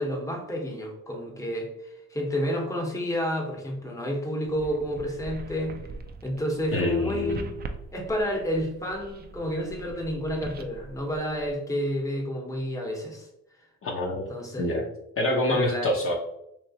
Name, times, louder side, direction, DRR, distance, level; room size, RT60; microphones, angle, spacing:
voice 1, 0.0-5.8 6.2-7.5 7.9-13.3 14.3-14.9 15.5-15.9, equal, 10° left, 1 dB, 0.9 m, -30 dB
sound 1, 4.4-11.6, right 4 dB, 35° right, 0.4 m, -42 dB
voice 2, 6.7-7.4 13.8-14.3 14.6-14.8 15.2-16.1, left 1 dB, 45° left, -1 dB, 0.7 m, -26 dB
3.1 x 3.0 x 2.7 m, 0.81 s
cardioid pair, 90°, 30 cm